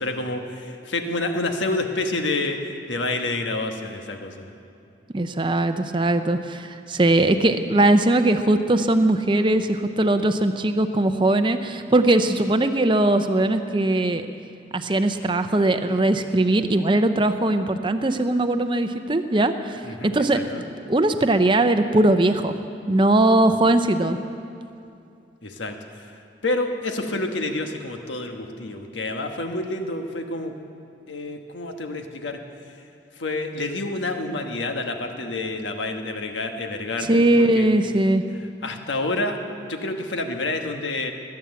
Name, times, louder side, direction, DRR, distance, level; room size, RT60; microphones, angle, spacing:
voice 1, 0.0-4.5 19.8-20.6 25.4-26.2 26.4-30.5 31.1-32.4 33.1-37.7 38.6-41.1, left 2 dB, 80° left, 5 dB, 1.3 m, -28 dB
voice 2, 5.1-14.3 14.7-20.4 20.9-22.5 22.9-24.2 37.0-38.2, right 1 dB, 25° right, 8 dB, 0.6 m, -20 dB
20.5 x 8.7 x 7.1 m, 2.6 s
head